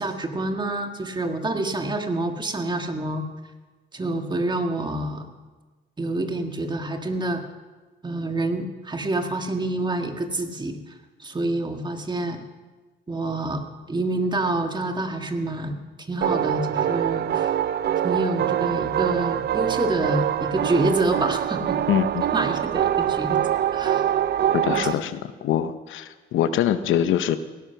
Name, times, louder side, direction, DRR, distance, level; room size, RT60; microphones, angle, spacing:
voice 1, 0.0-3.3 3.9-5.2 6.0-7.4 8.0-10.8 11.2-12.4 13.1-13.6 13.9-15.8 16.1-17.5 18.0-21.8 22.3-23.4 23.7-24.1 24.7-25.0, right 2 dB, 20° right, 5 dB, 1.7 m, -27 dB
sound 1, 16.2-24.9, right 10 dB, 55° right, 0.5 m, -24 dB
voice 2, 21.9-22.2 24.5-27.4, left 10 dB, 80° left, 12 dB, 0.8 m, -24 dB
17.0 x 11.0 x 5.8 m, 1.3 s
cardioid pair, 90°, 20 cm